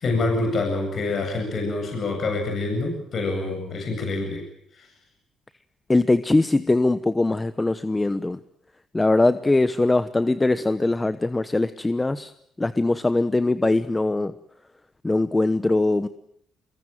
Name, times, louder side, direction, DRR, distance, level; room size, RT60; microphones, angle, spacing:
voice 1, 0.0-4.4 4.7-4.9, left 2 dB, 55° left, 3 dB, 7.9 m, -26 dB
voice 2, 5.9-8.4 8.9-12.3 12.6-14.3 15.0-16.1, left 2 dB, 15° left, 13 dB, 1.0 m, -21 dB
25.5 x 22.0 x 9.2 m, 0.72 s
cardioid pair, 90°, 0 cm